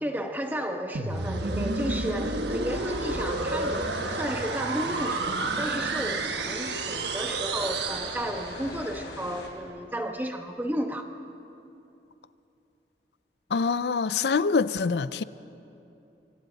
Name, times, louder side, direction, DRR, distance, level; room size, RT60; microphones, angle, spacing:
voice 1, 0.0-11.1, equal, 10° right, 1.1 m, -33 dB
sound 1, 1.0-8.8, right 3 dB, 80° right, 1.1 m, -30 dB
sound 2, 2.7-9.5, left 2 dB, 90° left, 3.6 m, -41 dB
voice 2, 13.5-15.2, left 5 dB, 75° left, 0.4 m, -25 dB
26.0 x 25.0 x 4.0 m
head